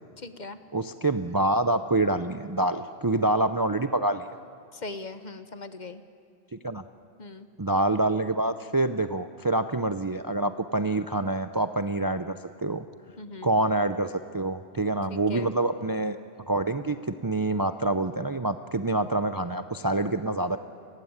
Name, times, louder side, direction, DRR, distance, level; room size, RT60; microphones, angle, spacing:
voice 1, 0.2-0.6 4.7-6.0 7.2-7.5 13.2-13.5 15.1-15.5, left 2 dB, 45° left, 10 dB, 1.2 m, -40 dB
voice 2, 0.7-4.3 6.5-6.8 7.6-12.4 12.6-12.8 13.4-16.2 16.5-20.6, right 2 dB, 25° right, 10 dB, 0.5 m, -26 dB
30.0 x 16.0 x 9.6 m, 2.3 s
omnidirectional pair, 1.1 m